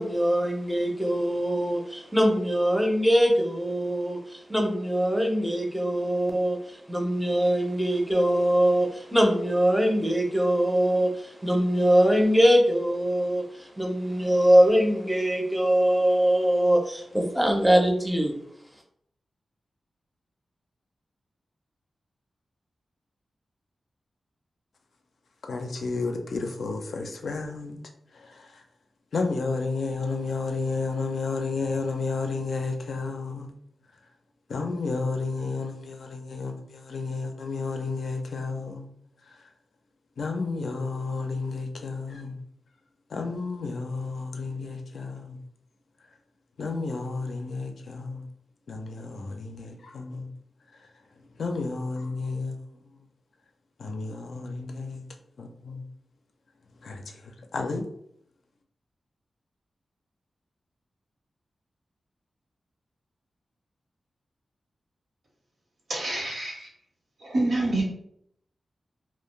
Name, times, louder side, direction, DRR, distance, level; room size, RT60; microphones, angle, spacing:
voice 1, 0.0-18.3, equal, 5° right, 0.5 m, -22 dB
voice 2, 25.4-27.8 28.1-28.6 29.1-33.5 34.5-38.9 39.2-39.5 40.2-42.4 43.1-45.4 46.6-48.3 48.7-50.3 50.7-50.9 51.2-53.0 53.8-55.0 55.4-55.9 56.8-57.8, left 3 dB, 80° left, 0.4 m, -32 dB
voice 3, 65.9-66.7 67.2-67.8, right 2 dB, 80° right, 0.9 m, -27 dB
2.3 x 2.1 x 3.1 m
wide cardioid pair, 110°, 0 cm